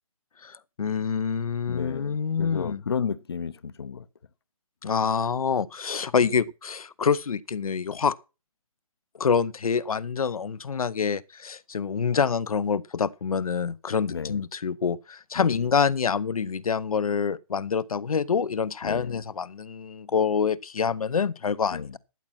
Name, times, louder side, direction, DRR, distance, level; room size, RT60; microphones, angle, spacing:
voice 1, 0.4-2.8 4.8-8.1 9.2-22.0, left 6 dB, 80° left, 0.8 m, -26 dB
voice 2, 1.7-4.0 14.1-14.4 15.4-15.6 18.8-19.2 21.7-21.9, left 6 dB, 45° left, 0.7 m, -33 dB
13.5 x 7.3 x 5.8 m
hypercardioid pair, 180°, 18 cm